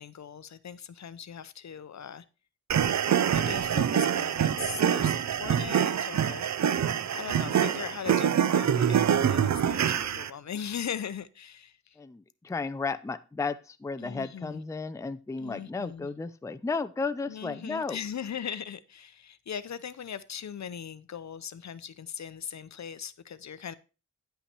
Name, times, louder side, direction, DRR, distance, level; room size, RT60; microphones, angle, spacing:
voice 1, 0.0-2.3 3.3-6.5 7.1-12.0 14.0-14.6 15.4-16.1 17.3-23.7, left 8 dB, 60° left, 0.6 m, -39 dB
sound 1, 2.7-10.3, right 8 dB, 60° right, 0.5 m, -25 dB
voice 2, 12.0-18.0, left 4 dB, 10° left, 0.4 m, -34 dB
10.0 x 5.7 x 4.3 m
wide cardioid pair, 115°, 31 cm